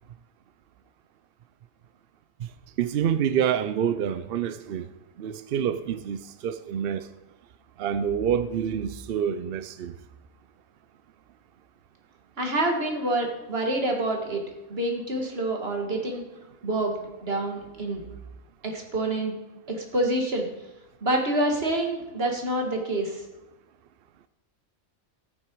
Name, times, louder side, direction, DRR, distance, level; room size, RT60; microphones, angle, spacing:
voice 1, 2.8-4.9 5.2-7.1 7.8-9.9, right 8 dB, 65° right, 0.6 m, -27 dB
voice 2, 12.4-14.4 14.7-16.2 16.6-18.0 18.6-19.3 19.7-20.5 21.0-23.2, right 1 dB, 45° right, 2.1 m, -27 dB
13.0 x 9.1 x 4.6 m
omnidirectional pair, 1.5 m